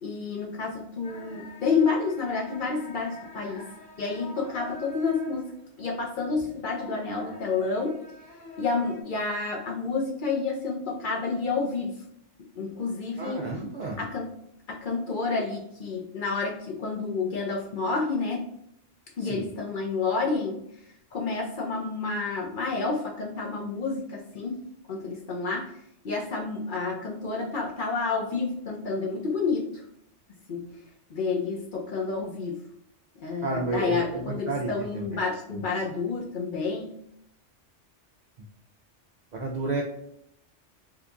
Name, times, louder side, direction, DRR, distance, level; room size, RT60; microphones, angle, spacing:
voice 1, 0.0-3.6 4.0-5.5 5.8-8.0 8.6-12.0 12.6-13.4 14.0-14.3 14.7-18.5 19.2-20.6 21.1-25.7 26.0-29.8 30.5-30.7 31.1-32.6 33.2-36.9, left 4 dB, 55° left, -1 dB, 0.6 m, -29 dB
sound 1, 1.0-9.0, left 2 dB, 90° left, 1.1 m, -46 dB
voice 2, 13.2-14.0 19.2-19.5 33.4-35.6 39.3-39.8, right 2 dB, 65° right, -1 dB, 0.4 m, -32 dB
2.8 x 2.3 x 3.7 m, 0.75 s
omnidirectional pair, 1.2 m